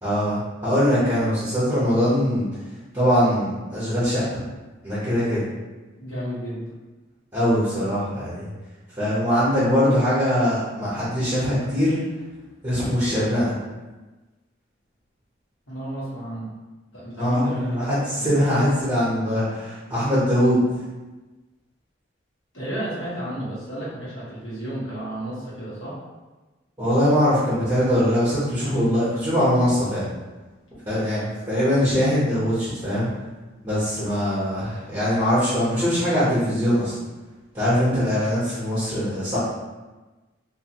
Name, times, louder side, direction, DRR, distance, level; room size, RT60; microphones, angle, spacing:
voice 1, 0.0-2.5 2.9-4.2 4.8-5.4 7.3-8.5 9.0-12.0 12.6-13.5 17.2-20.6 26.8-30.0 30.8-31.2 31.5-33.1 33.6-36.9 37.5-39.4, equal, 15° right, -13 dB, 0.8 m, -22 dB
voice 2, 6.0-6.6 15.7-16.5 16.9-18.4 22.5-25.9 31.0-31.3, right 1 dB, 70° left, -9 dB, 1.3 m, -32 dB
2.5 x 2.5 x 2.9 m, 1.2 s
head